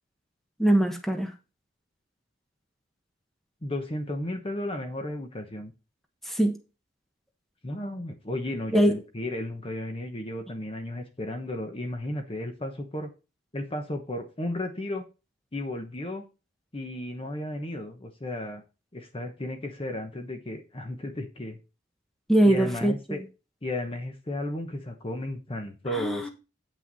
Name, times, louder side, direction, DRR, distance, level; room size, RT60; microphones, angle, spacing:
voice 1, 0.6-1.3 6.3-6.6 8.7-8.9 22.3-22.9 25.9-26.3, right 1 dB, ahead, 1.2 m, -22 dB
voice 2, 3.6-5.7 7.6-13.1 13.5-15.0 15.5-16.2 16.7-18.6 18.9-21.6 22.4-23.2 23.6-26.3, left 1 dB, 30° left, 1.1 m, -34 dB
9.4 x 6.1 x 4.1 m
head